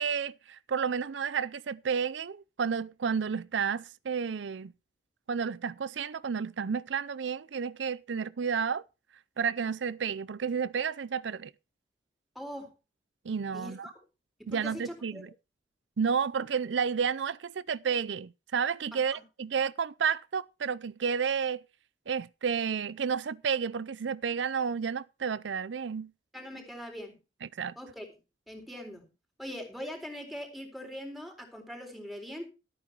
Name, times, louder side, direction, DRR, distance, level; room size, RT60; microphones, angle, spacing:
voice 1, 0.0-4.7 5.3-8.8 9.4-11.5 13.2-13.9 14.5-15.3 16.0-21.6 22.1-26.1 27.4-27.7, right 6 dB, 80° right, 0.5 m, -31 dB
voice 2, 12.4-12.7 13.5-13.9 14.4-15.2 18.9-19.2 26.3-27.2 27.8-28.1 28.5-29.1 29.4-32.5, equal, ahead, 3.9 m, -42 dB
13.5 x 8.9 x 4.6 m
head